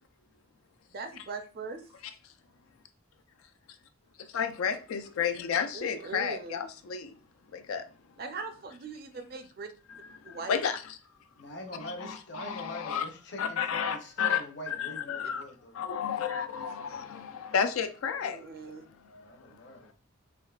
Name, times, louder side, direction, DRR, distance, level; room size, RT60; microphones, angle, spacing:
voice 1, 0.9-1.8 5.7-6.6 8.2-9.7 10.2-10.6 18.2-18.8, right 4 dB, 45° right, 0.5 m, -40 dB
voice 2, 4.3-7.1 7.5-7.9 9.9-11.0 12.0-13.0 13.4-15.5 15.7-18.4 19.0-19.2, left 7 dB, 90° left, 0.4 m, -32 dB
voice 3, 11.4-15.8 16.1-17.1 19.1-19.9, left 1 dB, 55° left, 0.7 m, -44 dB
3.5 x 3.1 x 2.3 m
head